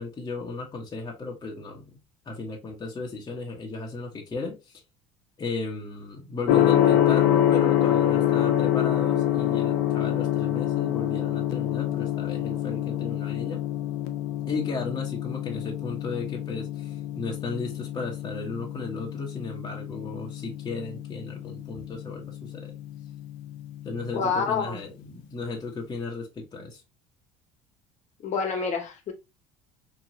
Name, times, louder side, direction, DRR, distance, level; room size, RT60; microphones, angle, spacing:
voice 1, 0.0-2.0 2.2-4.8 5.4-13.6 14.5-22.7 23.8-26.8, left 3 dB, 25° left, 1.1 m, -35 dB
Gong, 6.5-24.3, left 12 dB, 75° left, 0.6 m, -26 dB
voice 2, 24.1-24.8 28.2-29.1, left 5 dB, 50° left, 1.2 m, -27 dB
3.8 x 3.0 x 2.7 m
supercardioid pair, 85°, 16 cm